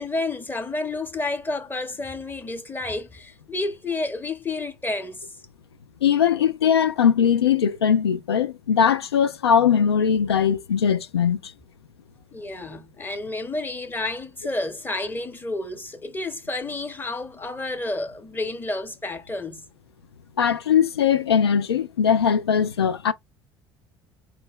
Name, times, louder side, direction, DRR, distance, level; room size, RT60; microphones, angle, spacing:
voice 1, 0.0-5.3 12.3-19.7, left 2 dB, 15° left, 0.8 m, -30 dB
voice 2, 6.0-11.4 20.4-23.1, left 7 dB, 85° left, 0.4 m, -20 dB
4.3 x 2.1 x 3.5 m
figure-of-eight pair, 60°, 13 cm